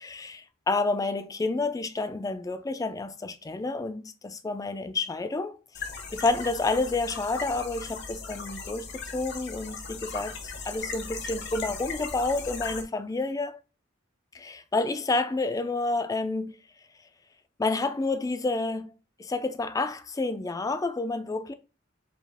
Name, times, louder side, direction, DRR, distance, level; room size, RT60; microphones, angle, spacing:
voice 1, 0.0-5.6 6.1-13.6 14.3-16.6 17.6-18.9 19.2-21.5, left 3 dB, 20° left, 0.3 m, -29 dB
sound 1, 5.7-12.8, left 4 dB, 60° left, 0.8 m, -38 dB
5.1 x 2.4 x 3.5 m
head